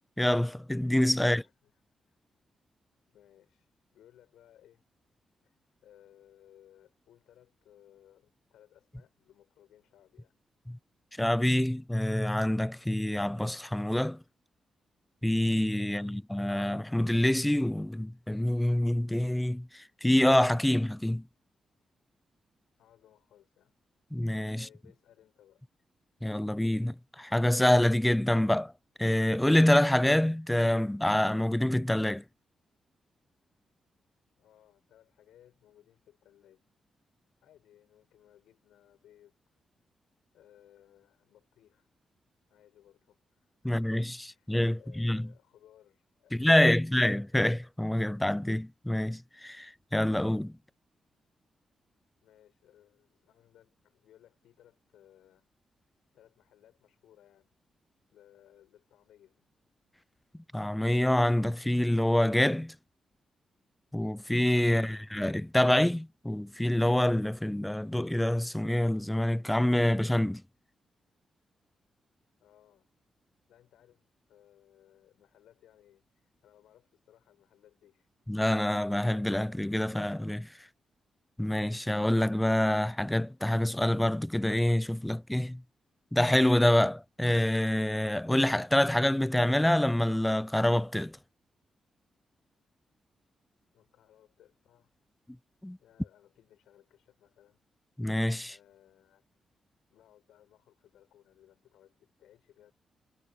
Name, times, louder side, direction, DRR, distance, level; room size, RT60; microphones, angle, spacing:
voice 1, 0.2-1.4 10.7-10.8 11.2-14.2 15.2-21.2 24.1-24.7 26.2-28.7 29.0-32.2 43.6-45.3 46.3-50.6 60.5-62.8 63.9-70.4 78.3-80.5 81.4-85.6 86.1-91.2 95.6-95.8 98.0-98.5, left 1 dB, 10° left, 0.3 m, -26 dB
voice 2, 1.2-1.8 2.1-2.2 3.1-4.8 5.4-5.6 5.8-10.4 15.9-16.2 22.8-23.8 24.5-25.6 34.4-36.6 37.4-39.4 40.3-42.0 42.5-47.0 52.2-55.5 56.1-57.6 58.1-59.5 64.7-65.1 72.4-72.9 73.5-78.1 93.7-94.9 95.8-97.6 98.5-99.3 99.9-102.7, left 12 dB, 85° left, 6.0 m, -62 dB
supercardioid pair, 50°, 0 cm